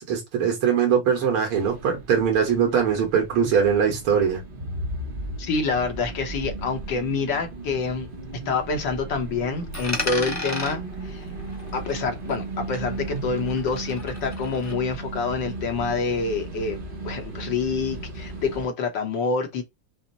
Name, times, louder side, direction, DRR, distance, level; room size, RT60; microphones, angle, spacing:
voice 1, 0.0-4.4 13.1-13.2, right 7 dB, 80° right, 2.3 m, -22 dB
sound 1, 1.5-18.7, right 2 dB, 50° right, 0.6 m, -36 dB
voice 2, 5.4-8.1 8.5-11.3 11.7-19.6, left 4 dB, 65° left, 1.5 m, -27 dB
Coin (dropping), 9.7-12.5 12.7-14.7, left 2 dB, 20° left, 0.5 m, -34 dB
5.8 x 2.1 x 3.9 m
omnidirectional pair, 2.4 m